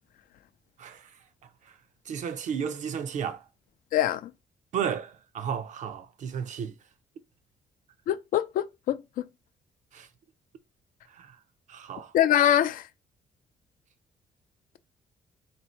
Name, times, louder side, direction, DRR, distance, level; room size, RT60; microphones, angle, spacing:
voice 1, 0.8-1.2 1.6-1.8 2.1-3.5 4.7-6.8 9.9-10.1 11.1-11.4 11.7-12.1, right 7 dB, 60° right, 0.5 m, -33 dB
voice 2, 3.9-4.3 8.1-9.2 12.1-12.9, left 11 dB, 75° left, 0.4 m, -24 dB
3.5 x 2.7 x 4.2 m
cardioid pair, 140°, 14 cm